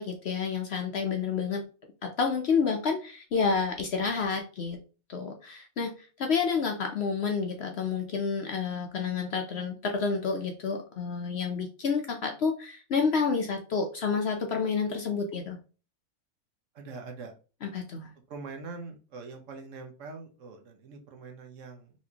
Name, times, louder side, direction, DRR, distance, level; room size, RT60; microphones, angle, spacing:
voice 1, 0.0-1.6 2.0-4.8 5.1-5.9 6.2-15.6 17.6-18.1, left 5 dB, 60° left, 4 dB, 0.7 m, -29 dB
voice 2, 16.7-17.3 18.3-21.9, right 4 dB, 65° right, 4 dB, 1.1 m, -43 dB
4.2 x 3.1 x 2.8 m, 0.35 s
omnidirectional pair, 1.5 m